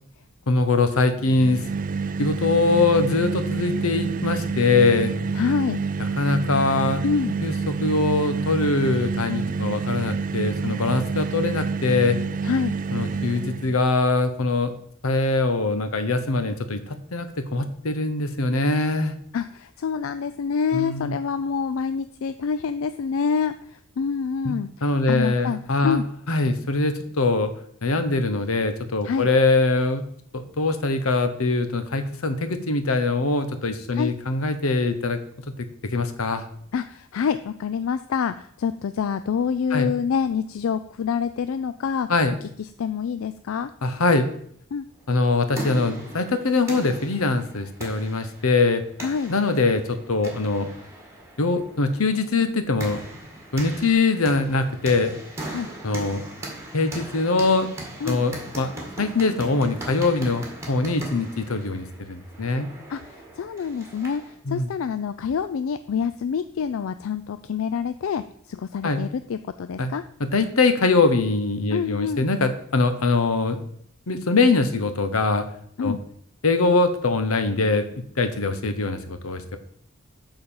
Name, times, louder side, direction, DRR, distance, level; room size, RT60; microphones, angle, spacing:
voice 1, 0.5-1.6 2.2-5.3 6.2-7.0 7.4-12.2 12.9-14.7 15.0-19.2 20.7-21.2 24.4-24.5 24.8-26.0 26.3-27.5 27.8-30.0 30.3-35.2 35.5-36.5 39.7-39.9 42.1-42.3 43.8-44.3 45.1-48.8 49.3-50.7 51.4-53.0 53.5-55.2 55.8-56.2 56.7-57.7 58.0-58.7 59.0-62.7 64.5-64.7 68.8-69.0 69.8-69.9 70.2-73.6 74.1-75.4 75.8-76.0 76.4-79.6, left 3 dB, 85° left, 9 dB, 1.0 m, -22 dB
sound 1, 1.2-13.8, right 5 dB, 40° right, 0.4 m, -28 dB
voice 2, 5.4-5.8 7.0-7.3 12.4-12.7 19.3-24.7 25.1-26.0 29.0-29.3 33.9-34.1 36.7-42.1 42.8-43.7 44.7-44.8 49.0-49.3 55.5-55.7 58.0-58.2 62.9-63.0 63.4-64.2 64.5-70.0 71.7-72.3 75.8-76.0, left 6 dB, 70° left, 11 dB, 0.4 m, -26 dB
sound 2, 45.6-64.3, right 1 dB, 15° right, 2.0 m, -39 dB
8.6 x 4.0 x 7.0 m, 0.65 s
head